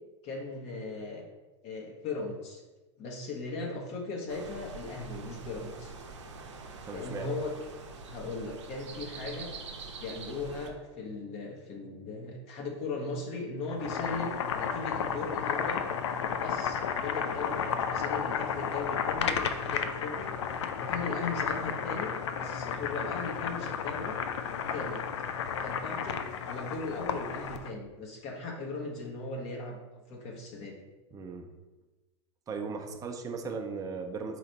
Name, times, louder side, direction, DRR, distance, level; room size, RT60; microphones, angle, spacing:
voice 1, 0.2-1.2 1.6-2.6 3.0-5.9 6.9-7.5 8.1-9.5 10.0-15.9 16.4-20.3 20.8-22.1 22.4-24.2 24.5-25.0 25.6-30.8, left 3 dB, 45° left, 0 dB, 0.9 m, -38 dB
sound 1, 4.3-10.7, right 4 dB, 75° right, 0.7 m, -45 dB
voice 2, 6.8-7.3 31.1-31.5 32.5-34.4, right 4 dB, 25° right, 4 dB, 0.6 m, -37 dB
Boiling, 13.6-27.7, left 7 dB, 70° left, 0.4 m, -33 dB
4.1 x 3.0 x 4.0 m, 1.1 s
hypercardioid pair, 90°, 15 cm